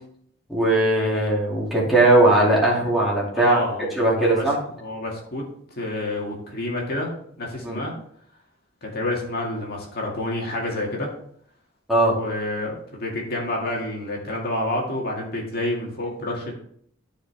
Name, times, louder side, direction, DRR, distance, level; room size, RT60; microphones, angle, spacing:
voice 1, 0.5-3.6 3.9-4.6 7.6-7.8 11.9-12.2, right 2 dB, ahead, -6 dB, 2.5 m, -19 dB
voice 2, 3.3-4.5 4.8-5.5 5.8-7.9 8.8-11.1 12.2-16.5, left 1 dB, 50° left, -2 dB, 2.1 m, -28 dB
13.0 x 4.9 x 3.5 m, 0.64 s
head